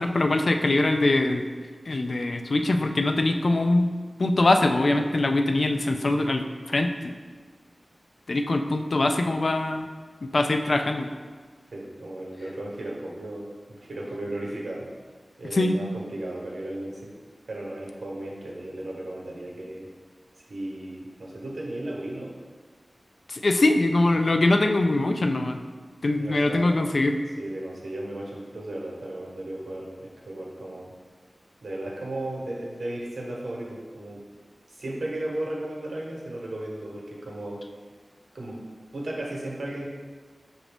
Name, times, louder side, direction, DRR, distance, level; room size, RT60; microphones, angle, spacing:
voice 1, 0.0-1.4 1.9-3.9 4.2-7.1 8.3-9.9 10.3-11.1 15.5-15.8 23.3-25.6 26.0-27.2, left 2 dB, 60° left, 5 dB, 0.3 m, -23 dB
voice 2, 11.7-14.9 15.4-17.1 17.5-19.9 20.4-22.3 26.2-26.7 27.4-30.9 31.6-34.2 34.7-37.6 38.3-38.6 38.9-39.9, right 1 dB, 90° right, -3 dB, 0.9 m, -35 dB
5.8 x 2.6 x 3.4 m, 1.5 s
wide cardioid pair, 75°, 0 cm